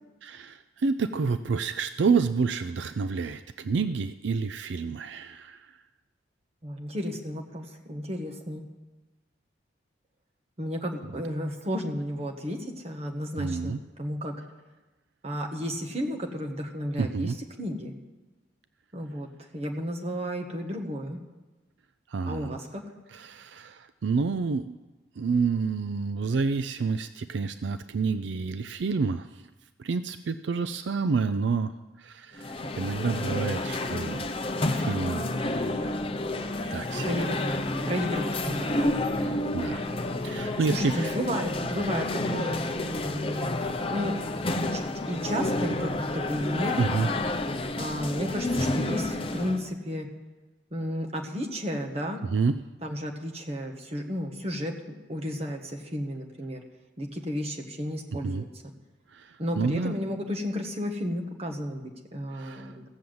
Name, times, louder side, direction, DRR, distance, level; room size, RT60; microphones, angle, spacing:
voice 1, 0.2-5.6 13.4-13.8 17.0-17.4 22.1-22.5 23.1-24.8 25.2-29.4 29.8-31.7 32.0-34.3 34.7-35.4 36.7-37.3 39.2-39.8 40.2-41.1 46.8-47.1 52.3-52.6 58.2-58.4 59.1-59.9 62.3-62.7, right 4 dB, 70° right, 11 dB, 0.4 m, -29 dB
voice 2, 6.6-8.6 10.6-14.3 15.2-17.9 18.9-19.3 19.5-21.2 22.3-22.8 37.0-37.4 37.9-38.9 40.7-43.5 43.9-44.2 44.7-46.7 47.8-50.1 50.7-52.2 52.8-56.6 57.0-58.5 59.4-62.8, equal, 35° right, 2 dB, 1.3 m, -33 dB
sound 1, 32.3-49.7, left 2 dB, 30° left, 0.7 m, -30 dB
15.0 x 7.0 x 7.8 m, 1.1 s
head